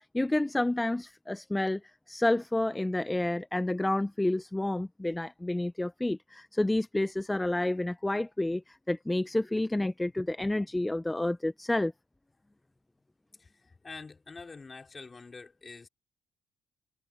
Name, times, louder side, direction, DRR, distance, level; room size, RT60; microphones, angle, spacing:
voice 1, 0.1-1.8 2.1-11.9, left 1 dB, 10° left, 0.5 m, -29 dB
voice 2, 13.4-15.9, left 4 dB, 30° left, 4.2 m, -46 dB
supercardioid pair, 75°, 0 cm